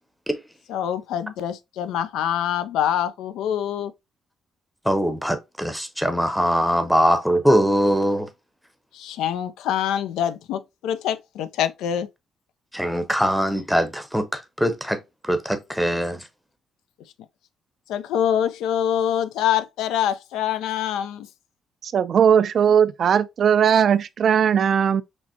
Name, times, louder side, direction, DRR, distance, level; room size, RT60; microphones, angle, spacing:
voice 1, 0.7-3.9 8.9-12.1 17.9-21.3, left 10 dB, 90° left, 0.3 m, -25 dB
voice 2, 4.9-8.3 12.7-15.0 15.2-16.2, equal, ahead, 0.7 m, -22 dB
voice 3, 21.8-25.0, right 8 dB, 55° right, 0.4 m, -18 dB
6.0 x 2.1 x 2.7 m
cardioid pair, 90°, 0 cm